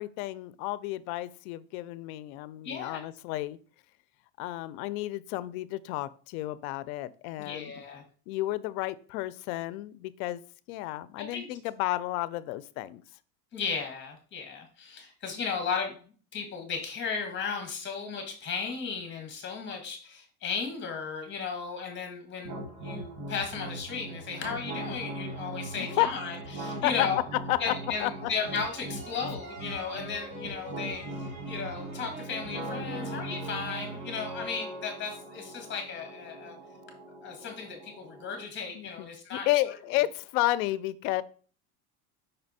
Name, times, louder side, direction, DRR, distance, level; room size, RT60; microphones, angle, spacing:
voice 1, 0.0-3.6 4.4-7.8 8.3-10.4 10.7-13.0 25.8-26.1 26.6-27.1 27.5-27.7 28.0-28.3 38.7-41.2, left 16 dB, 75° left, 17 dB, 0.6 m, -31 dB
voice 2, 2.6-3.0 7.4-8.0 11.2-11.5 13.5-16.0 16.3-27.2 27.6-36.5 37.2-39.5, left 5 dB, 25° left, 4 dB, 1.6 m, -35 dB
sound 1, 22.4-38.4, right 2 dB, 80° right, 2.1 m, -40 dB
sound 2, 28.2-35.4, right 1 dB, 30° right, 2.5 m, -45 dB
5.6 x 4.3 x 4.1 m, 0.42 s
cardioid pair, 160°, 43 cm